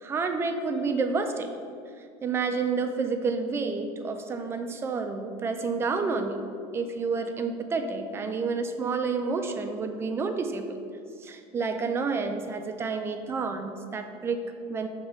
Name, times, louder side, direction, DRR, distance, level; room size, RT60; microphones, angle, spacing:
voice 1, 0.0-1.5 2.2-10.8 11.2-14.9, right 4 dB, 15° right, 7 dB, 0.4 m, -29 dB
7.0 x 3.0 x 5.2 m, 2.3 s
cardioid pair, 155°, 14 cm